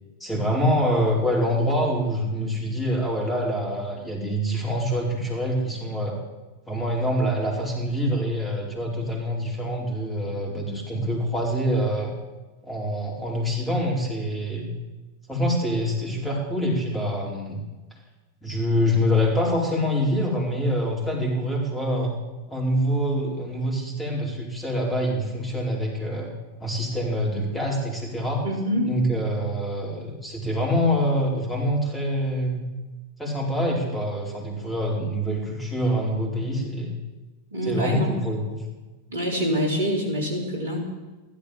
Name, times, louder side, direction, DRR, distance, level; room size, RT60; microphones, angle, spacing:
voice 1, 0.2-6.2 6.7-12.1 12.6-14.7 15.3-17.6 18.4-22.1 22.5-26.3 26.6-28.4 28.9-32.7 33.2-36.9 37.6-38.6, equal, 10° left, -2 dB, 4.7 m, -25 dB
voice 2, 28.4-28.9 37.5-38.1 39.1-40.8, equal, 65° right, 0 dB, 3.8 m, -25 dB
15.5 x 12.5 x 7.3 m, 1.2 s
figure-of-eight pair, 90°, 0 cm